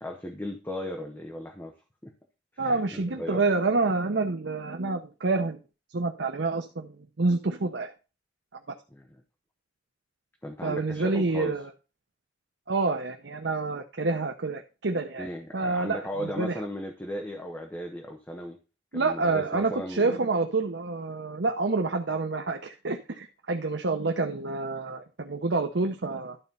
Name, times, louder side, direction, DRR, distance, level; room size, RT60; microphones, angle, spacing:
voice 1, 0.0-1.7 2.0-2.1 2.5-3.4 8.9-9.1 10.4-11.6 15.2-18.6 18.9-20.3, equal, 10° left, 2 dB, 1.1 m, -36 dB
voice 2, 2.6-5.6 5.9-7.9 10.6-11.7 12.7-15.3 15.5-16.5 18.9-26.4, right 3 dB, 80° right, 4 dB, 0.8 m, -28 dB
12.0 x 4.3 x 5.4 m, 0.32 s
head